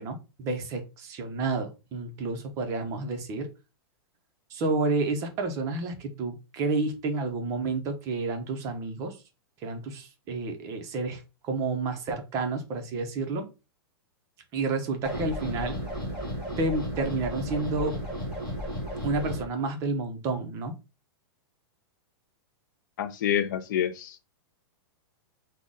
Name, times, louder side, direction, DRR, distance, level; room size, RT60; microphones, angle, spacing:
voice 1, 0.0-3.5 4.5-9.2 9.6-13.5 14.5-15.8 16.6-18.0 19.0-20.7, right 3 dB, 25° right, 0.5 m, -30 dB
sound 1, 15.0-19.4, equal, 5° right, 1.8 m, -33 dB
voice 2, 23.0-24.4, left 10 dB, 50° left, 0.4 m, -28 dB
3.7 x 2.1 x 3.6 m
supercardioid pair, 165°, 13 cm